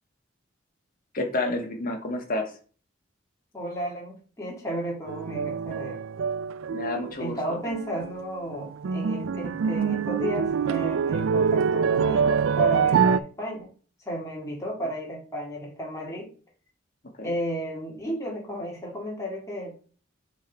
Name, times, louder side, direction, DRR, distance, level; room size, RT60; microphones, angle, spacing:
voice 1, 1.1-2.5 6.7-7.6 17.2-17.3, left 2 dB, 45° left, 3 dB, 1.5 m, -30 dB
voice 2, 3.5-6.0 7.2-13.7 14.1-16.3 17.2-19.8, equal, 15° left, -3 dB, 2.0 m, -33 dB
sound 1, 5.1-7.4 7.6-8.2 8.5-13.2, right 6 dB, 90° right, 0.4 m, -25 dB
6.4 x 3.9 x 4.5 m, 0.40 s
head